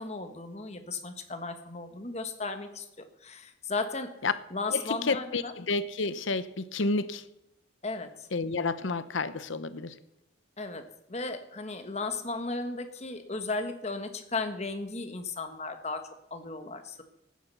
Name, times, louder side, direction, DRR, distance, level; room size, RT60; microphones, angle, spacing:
voice 1, 0.0-4.1 4.5-5.5 7.8-8.3 10.6-10.8 11.1-16.0 16.3-17.0, left 3 dB, 30° left, 7 dB, 1.3 m, -35 dB
voice 2, 4.7-7.3 8.3-10.0, left 3 dB, 65° left, 14 dB, 0.8 m, -30 dB
15.0 x 9.4 x 6.8 m, 0.86 s
head